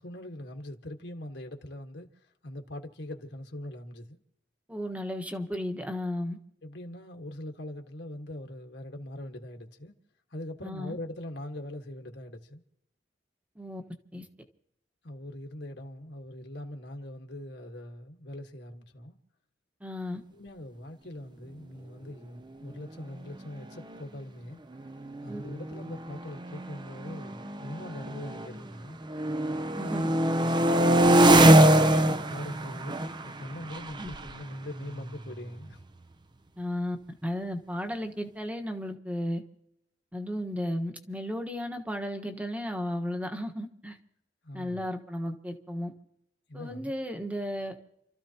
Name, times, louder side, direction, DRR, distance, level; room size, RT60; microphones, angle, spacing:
voice 1, 0.0-4.2 6.6-9.9 10.3-12.6 15.0-19.2 20.3-24.6 25.2-29.0 30.8-33.0 33.2-35.8 44.4-44.9 46.5-46.9, left 1 dB, 65° left, 1.6 m, -42 dB
voice 2, 4.7-6.4 10.6-11.0 13.6-13.8 14.1-14.2 19.8-20.2 25.3-25.4 29.7-30.2 34.0-34.1 36.6-37.0 37.2-39.4 40.1-44.0 44.5-45.9 46.5-47.8, left 1 dB, 10° right, 1.3 m, -34 dB
sound 1, 23.3-23.4 23.6-24.0 24.7-28.7 29.0-35.7, right 1 dB, 25° right, 0.6 m, -24 dB
29.5 x 14.0 x 2.9 m
head